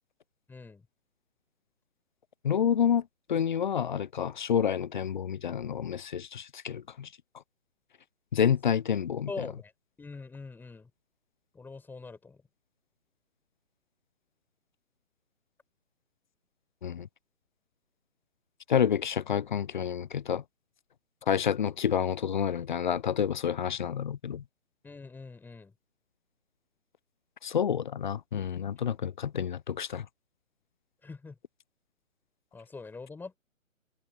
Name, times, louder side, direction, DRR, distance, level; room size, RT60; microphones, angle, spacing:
voice 1, 0.5-0.8 9.3-9.7 10.0-10.9 11.5-12.4 24.8-25.7 31.0-31.4 32.5-33.4, left 4 dB, 5° left, 5.5 m, -43 dB
voice 2, 2.4-3.0 3.3-7.1 8.3-9.3 16.8-17.1 18.7-20.4 21.3-24.4 27.4-30.0, left 8 dB, 35° left, 0.8 m, -29 dB
figure-of-eight pair, 145°, 41 cm